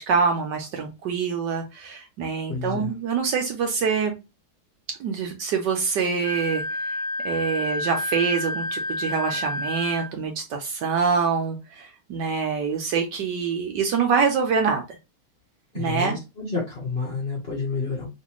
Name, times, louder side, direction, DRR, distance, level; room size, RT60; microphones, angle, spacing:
voice 1, 0.0-4.1 5.0-7.0 7.2-15.0 15.7-16.2, right 5 dB, 70° right, 4 dB, 1.1 m, -25 dB
voice 2, 2.5-2.9 15.7-18.1, left 4 dB, 45° left, -4 dB, 0.9 m, -29 dB
Wind instrument woodwind instrument, 6.2-10.1, left 1 dB, 75° left, 1.4 m, -29 dB
3.2 x 3.0 x 2.9 m, 0.26 s
omnidirectional pair, 2.3 m